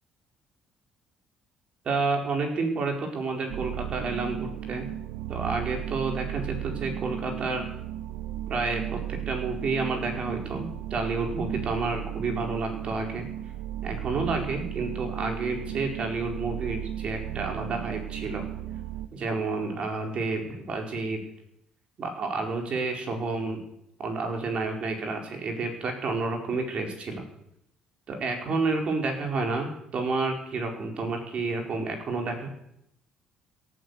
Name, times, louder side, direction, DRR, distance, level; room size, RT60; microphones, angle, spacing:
voice 1, 1.8-4.9 5.3-7.7 8.5-13.3 13.8-18.4 19.1-21.2 22.0-23.6 24.0-27.2 28.1-32.5, right 3 dB, 50° right, 3 dB, 4.7 m, -30 dB
sound 1, 3.5-19.1, right 11 dB, 90° right, 1.0 m, -35 dB
17.5 x 9.5 x 8.4 m, 0.77 s
cardioid pair, 105°, 3 cm